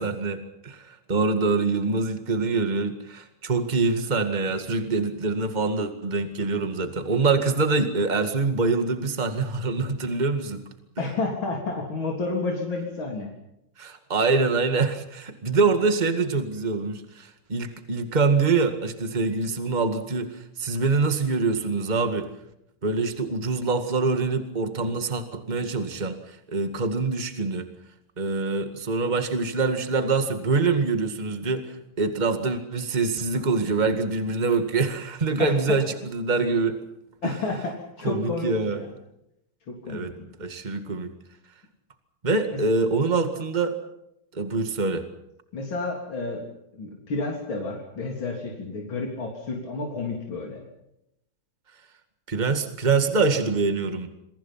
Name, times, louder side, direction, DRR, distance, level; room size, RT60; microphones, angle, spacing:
voice 1, 0.0-10.6 13.8-22.3 22.8-27.7 28.2-36.8 38.0-38.8 39.9-40.1 40.4-41.1 42.2-43.7 44.3-45.0 52.3-54.1, right 4 dB, 20° right, 7 dB, 2.0 m, -25 dB
voice 2, 11.0-13.3 35.4-35.8 37.2-38.9 39.7-40.3 42.5-42.6 45.5-46.4 46.7-50.6, left 3 dB, 70° left, 0 dB, 4.3 m, -31 dB
28.0 x 23.5 x 5.8 m, 0.81 s
omnidirectional pair, 2.3 m